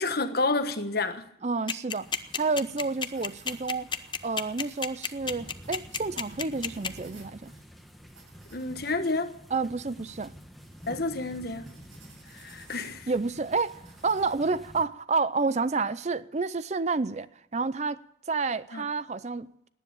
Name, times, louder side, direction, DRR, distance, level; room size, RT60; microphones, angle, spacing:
voice 1, 0.0-1.2 8.5-9.4 10.9-11.7 12.3-13.1 18.7-18.8, left 3 dB, 50° left, 1.3 m, -29 dB
voice 2, 1.4-2.1 2.4-3.9 4.2-7.5 9.5-10.3 13.1-19.7, right 4 dB, 35° right, 0.5 m, -29 dB
sound 1, 1.7-6.9, left 6 dB, 25° left, 0.7 m, -30 dB
sound 2, 2.0-14.9, equal, ahead, 1.5 m, -50 dB
sound 3, 3.0-14.3, right 3 dB, 90° right, 7.7 m, -56 dB
18.5 x 10.0 x 7.0 m
head